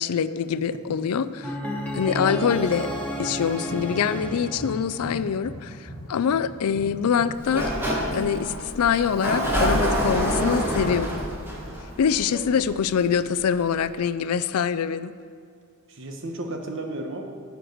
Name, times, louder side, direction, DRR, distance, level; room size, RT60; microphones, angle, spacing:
voice 1, 0.0-1.5 1.9-2.9 3.2-5.8 6.1-7.7 8.1-11.2 12.0-15.1, left 7 dB, 85° left, 15 dB, 0.4 m, -24 dB
voice 2, 0.5-1.3 1.8-2.0 12.5-12.8 15.9-17.2, right 1 dB, 60° right, 3 dB, 1.1 m, -35 dB
sound 1, 1.4-5.5, equal, 5° left, 1.1 m, -32 dB
sound 2, 3.0-7.5, equal, 25° left, 2.5 m, -39 dB
Sliding door, 7.3-13.0, equal, 10° right, 1.4 m, -27 dB
11.0 x 4.7 x 7.9 m, 2.3 s
head